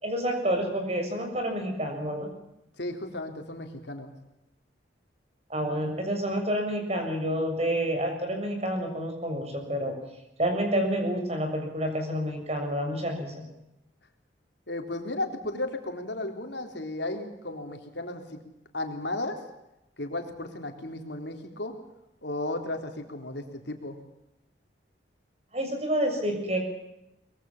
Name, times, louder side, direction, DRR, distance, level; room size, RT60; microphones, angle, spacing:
voice 1, 0.0-2.3 5.5-9.9 10.4-13.5 25.5-26.6, equal, 35° right, 4 dB, 6.9 m, -29 dB
voice 2, 2.8-4.1 14.7-18.4 18.7-19.4 20.0-21.7 22.2-24.0, left 2 dB, 70° left, 5 dB, 3.6 m, -34 dB
24.0 x 21.5 x 7.3 m, 0.87 s
head